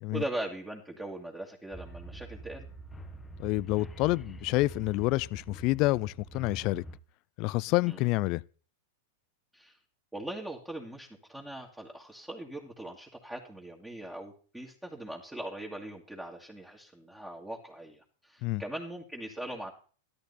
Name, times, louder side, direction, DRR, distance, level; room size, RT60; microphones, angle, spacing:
voice 1, 0.1-2.7 7.8-8.1 9.5-9.8 10.1-19.7, right 1 dB, 5° right, 2.2 m, -40 dB
sound 1, 1.7-7.0, right 1 dB, 15° left, 1.4 m, -45 dB
voice 2, 3.4-6.8 7.4-8.4 18.4-18.6, left 20 dB, 50° left, 0.5 m, -28 dB
13.0 x 12.0 x 4.2 m
hypercardioid pair, 120°, 0 cm